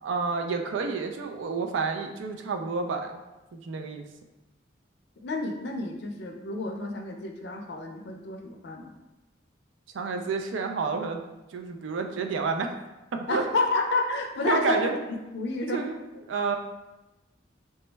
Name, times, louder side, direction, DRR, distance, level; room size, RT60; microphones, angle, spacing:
voice 1, 0.0-3.2 3.5-4.1 9.9-11.2 11.5-12.7 13.1-13.4 14.5-15.0 15.7-16.0 16.3-16.6, right 4 dB, 90° right, 4 dB, 0.4 m, -29 dB
voice 2, 5.2-8.9 13.3-15.0 15.3-15.9, left 2 dB, 65° left, 4 dB, 0.4 m, -29 dB
3.2 x 2.0 x 3.2 m, 1.0 s
head